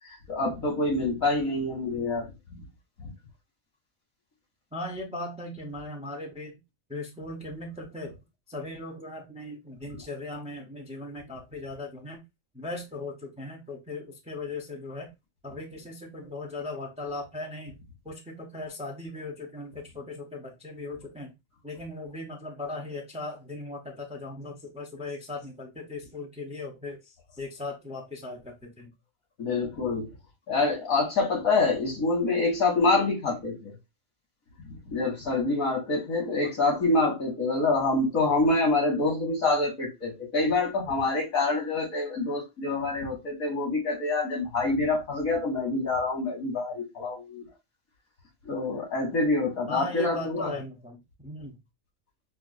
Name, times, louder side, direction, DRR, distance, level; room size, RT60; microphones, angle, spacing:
voice 1, 0.3-2.6 3.0-3.1 29.4-30.1 30.5-33.7 34.7-47.5 48.5-50.5, left 3 dB, 80° left, 2.2 m, -26 dB
voice 2, 4.7-6.6 6.9-8.2 8.5-12.2 12.5-15.1 15.4-17.8 18.0-21.3 21.6-28.9 36.4-36.5 49.7-51.6, left 2 dB, 5° right, 0.5 m, -38 dB
5.8 x 2.4 x 2.5 m
omnidirectional pair, 1.4 m